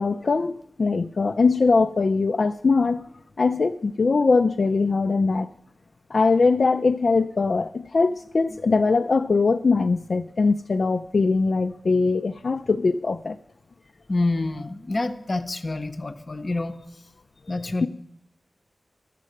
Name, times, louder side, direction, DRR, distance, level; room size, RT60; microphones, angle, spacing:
voice 1, 0.0-3.0 3.4-5.5 6.1-13.4, left 4 dB, 60° left, 7 dB, 0.3 m, -21 dB
voice 2, 14.1-16.8 17.5-17.9, left 2 dB, 40° left, 8 dB, 0.7 m, -27 dB
12.0 x 7.5 x 7.6 m, 0.79 s
wide cardioid pair, 105°, 0 cm